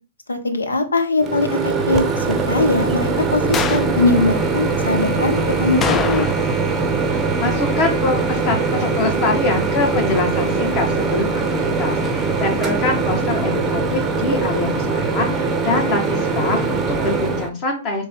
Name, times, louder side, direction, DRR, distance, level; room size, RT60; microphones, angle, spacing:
voice 1, 0.3-6.3, left 2 dB, 80° left, 8 dB, 0.8 m, -21 dB
Microwave oven, 1.2-17.5, right 4 dB, 20° right, 0.7 m, -21 dB
sound 1, 3.5-4.0 5.8-6.7 6.9-7.0 12.0-12.2, left 7 dB, 20° left, 0.3 m, -24 dB
voice 2, 7.4-18.1, left 3 dB, 40° left, 2 dB, 1.6 m, -24 dB
4.0 x 3.2 x 3.7 m, 0.35 s
figure-of-eight pair, 110°, 0 cm